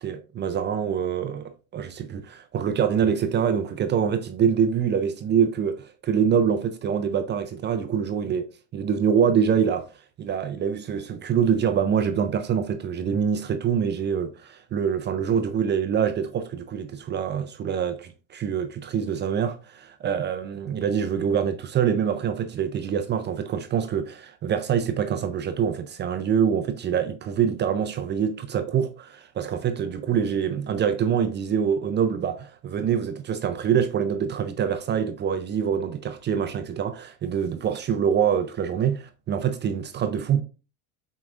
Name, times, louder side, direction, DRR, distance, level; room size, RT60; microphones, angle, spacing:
voice 1, 0.0-8.5 8.7-9.9 10.2-40.4, right 7 dB, 25° right, 0.5 m, -25 dB
5.8 x 3.8 x 2.4 m
hypercardioid pair, 90°, 44 cm